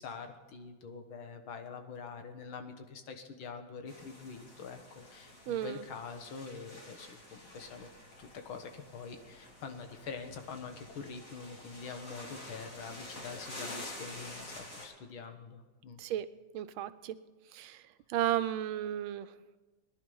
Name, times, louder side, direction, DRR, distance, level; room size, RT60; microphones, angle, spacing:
voice 1, 0.0-7.9 8.2-16.0, left 5 dB, 85° left, 7 dB, 2.1 m, -45 dB
sound 1, 3.9-14.9, left 1 dB, 40° left, 3.0 m, -49 dB
voice 2, 5.5-5.8 16.0-16.3 16.5-17.2 17.5-17.8 18.1-19.3, right 12 dB, 85° right, 13 dB, 1.5 m, -33 dB
19.0 x 11.0 x 5.5 m, 1.3 s
omnidirectional pair, 2.2 m